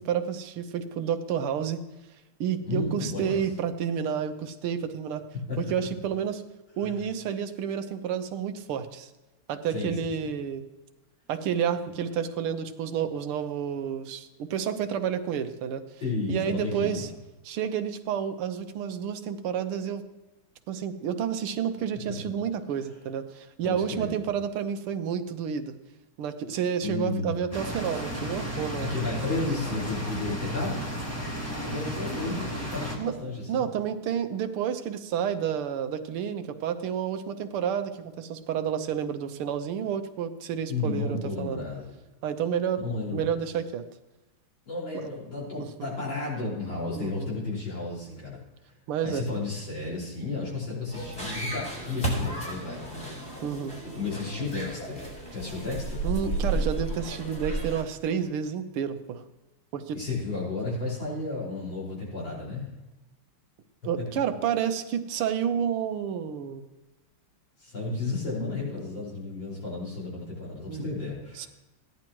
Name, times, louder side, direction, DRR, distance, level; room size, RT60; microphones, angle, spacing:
voice 1, 0.0-1.8 2.4-5.2 5.6-6.4 6.8-9.1 9.5-10.7 11.3-15.8 16.3-17.1 17.5-20.0 20.7-25.8 26.2-28.9 33.0-33.1 33.5-41.6 42.2-42.8 43.1-43.8 44.9-45.1 45.6-45.7 47.0-47.3 48.9-49.2 53.4-53.8 56.0-59.2 59.7-60.0 63.8-66.6 70.7-70.9 71.4-71.5, right 8 dB, 90° right, 8 dB, 1.7 m, -30 dB
voice 2, 2.6-3.4 5.5-5.6 6.8-7.0 9.7-10.3 16.0-17.1 23.6-24.1 26.8-27.3 28.8-30.8 31.6-33.7 40.7-41.8 42.8-43.4 44.7-48.4 49.0-53.2 53.9-56.1 59.9-62.7 67.6-71.5, left 3 dB, 60° left, -6 dB, 5.9 m, -33 dB
sound 1, 27.5-33.0, equal, 10° left, 1.5 m, -33 dB
sound 2, 50.9-57.8, right 2 dB, 30° left, 4.3 m, -33 dB
16.0 x 10.5 x 3.0 m, 1.0 s
omnidirectional pair, 2.3 m